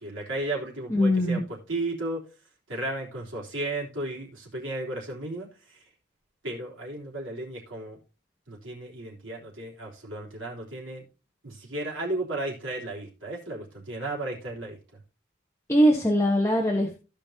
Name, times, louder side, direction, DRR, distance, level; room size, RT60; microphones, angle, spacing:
voice 1, 0.0-1.4 1.7-2.2 2.7-5.5 6.4-8.0 8.5-11.0 11.4-14.8, right 2 dB, 85° right, -4 dB, 3.5 m, -34 dB
voice 2, 0.9-1.4 15.7-17.0, equal, 15° left, 0 dB, 1.2 m, -21 dB
16.0 x 5.4 x 2.8 m, 0.32 s
head